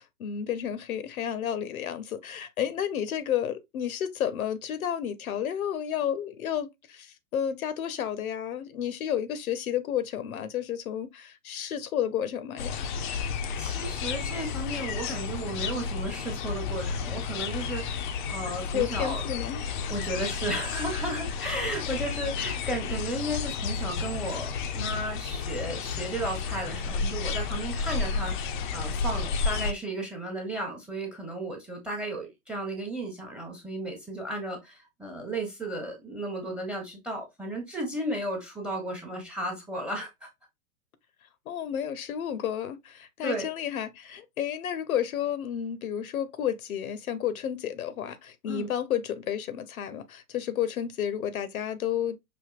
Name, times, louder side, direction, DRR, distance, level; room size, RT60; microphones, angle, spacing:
voice 1, 0.0-12.9 18.7-19.6 41.5-52.2, left 9 dB, 70° left, 0.7 m, -31 dB
sound 1, 12.6-29.7, left 5 dB, 35° left, 0.4 m, -32 dB
voice 2, 13.6-19.3 19.7-28.3 28.7-40.3 43.2-43.5 48.4-48.7, right 1 dB, ahead, 0.7 m, -34 dB
5.0 x 2.6 x 2.4 m
hypercardioid pair, 120°, 44 cm